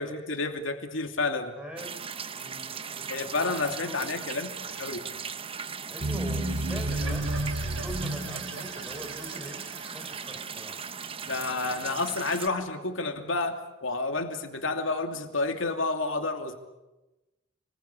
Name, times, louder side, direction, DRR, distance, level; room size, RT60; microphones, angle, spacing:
voice 1, 0.0-1.6 3.1-4.5 4.8-5.0 11.3-16.6, left 3 dB, 80° left, 5 dB, 2.8 m, -30 dB
voice 2, 1.5-2.1 2.3-4.2 5.9-10.9, equal, 5° right, 3 dB, 5.2 m, -43 dB
sound 1, 1.8-12.5, right 6 dB, 30° right, 1.0 m, -38 dB
sound 2, 6.0-10.4, right 1 dB, 75° right, 5.3 m, -32 dB
30.0 x 22.0 x 8.4 m, 1.0 s
head